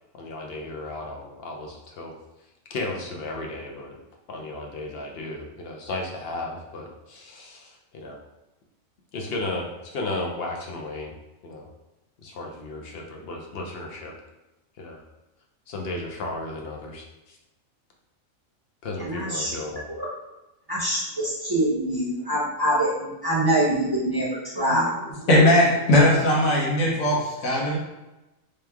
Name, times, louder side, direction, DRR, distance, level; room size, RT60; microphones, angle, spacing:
voice 1, 0.1-2.1 2.7-4.0 4.3-8.2 9.1-11.1 11.4-11.7 12.2-14.1 14.8-15.0 15.7-17.4 18.8-19.8, left 2 dB, 55° left, 1 dB, 0.8 m, -34 dB
voice 2, 19.1-19.5 20.0-20.1 20.7-24.3 24.5-24.8 25.1-25.3, right 1 dB, 25° right, -6 dB, 0.6 m, -24 dB
voice 3, 25.3-27.8, left 1 dB, 85° left, -3 dB, 1.5 m, -19 dB
3.3 x 3.1 x 3.4 m, 1.0 s
omnidirectional pair, 1.4 m